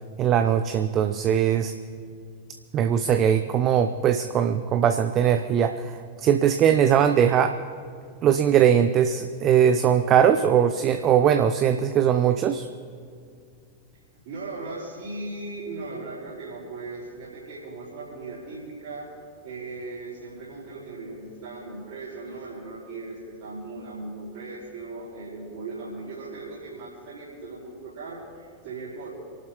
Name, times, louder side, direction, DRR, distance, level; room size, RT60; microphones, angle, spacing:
voice 1, 0.2-1.7 2.7-5.9 6.2-7.6 8.2-12.7, right 9 dB, 35° right, 9 dB, 0.7 m, -20 dB
voice 2, 14.2-19.1 19.4-29.1, right 3 dB, 50° right, -9 dB, 4.9 m, -38 dB
29.5 x 11.5 x 3.1 m, 2.2 s
figure-of-eight pair, 90°, 0 cm